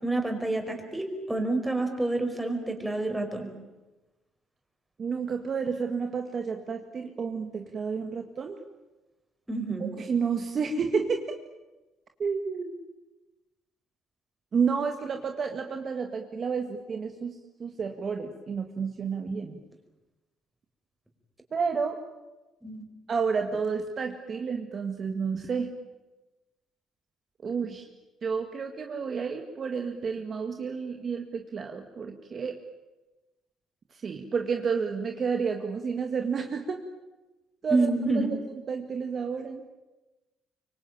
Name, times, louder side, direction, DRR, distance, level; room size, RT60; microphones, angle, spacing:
voice 1, 0.0-3.5 9.5-9.9 22.6-22.8 37.7-38.3, right 2 dB, 5° right, 4 dB, 5.0 m, -28 dB
voice 2, 5.0-8.6 9.8-11.2 12.2-12.7 14.5-19.6 21.5-22.0 23.1-25.7 27.4-27.9 28.2-32.6 33.9-36.8 37.6-37.9 38.7-39.7, right 5 dB, 40° right, 5 dB, 1.9 m, -30 dB
24.5 x 24.5 x 9.0 m, 1.1 s
cardioid pair, 115°, 0 cm